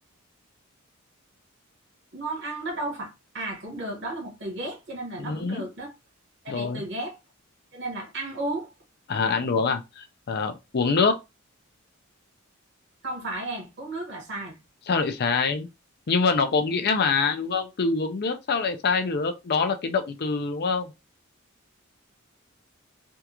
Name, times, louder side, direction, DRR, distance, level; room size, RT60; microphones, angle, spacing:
voice 1, 2.1-5.9 6.4-7.2 7.7-8.7 13.0-14.6, right 2 dB, 60° right, 1.6 m, -34 dB
voice 2, 5.2-5.6 6.5-6.8 9.1-11.2 14.9-15.7 16.1-20.9, left 4 dB, 50° left, 0.5 m, -25 dB
3.5 x 2.4 x 2.9 m
head